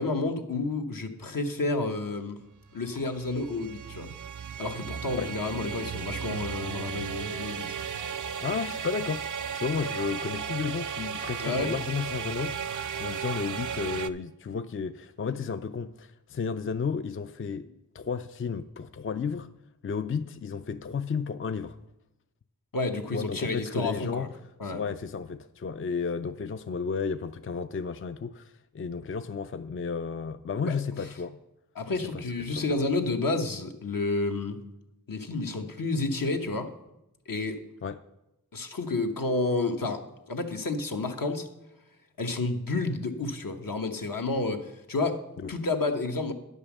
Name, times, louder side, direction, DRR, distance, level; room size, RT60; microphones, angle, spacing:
voice 1, 0.0-2.4 2.7-4.1 4.6-7.8 11.4-11.7 22.7-24.3 24.6-24.8 30.6-30.8 31.7-34.6 35.1-36.7 37.3-37.6 38.5-40.0 40.3-41.5 42.2-46.3, left 3 dB, 70° left, 1.0 m, -30 dB
sound 1, 2.7-14.1, right 7 dB, 60° right, 0.5 m, -35 dB
voice 2, 8.4-19.5 19.8-21.8 23.1-24.3 24.6-31.4 31.9-32.2 32.6-32.8 37.8-38.0 45.4-45.5, left 5 dB, 40° left, 0.4 m, -33 dB
9.7 x 5.4 x 7.2 m
wide cardioid pair, 60°, 35 cm